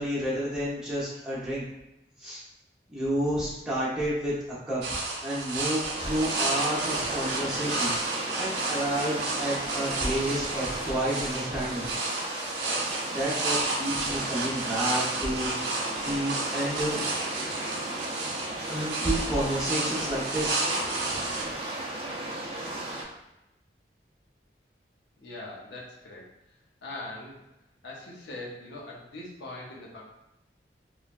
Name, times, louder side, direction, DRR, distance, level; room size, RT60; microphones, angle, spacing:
voice 1, 0.0-1.6 2.2-2.4 2.9-4.8 5.2-11.9 13.1-15.8 16.0-17.0 18.7-21.4, right 1 dB, 5° right, -9 dB, 0.8 m, -30 dB
sound 1, 4.8-21.4, right 2 dB, 80° right, 0.6 m, -32 dB
sound 2, 6.0-23.0, right 1 dB, 35° right, 0.5 m, -35 dB
voice 2, 25.2-27.5 27.8-30.0, left 2 dB, 85° left, -4 dB, 0.7 m, -42 dB
3.1 x 2.2 x 2.4 m, 0.91 s
head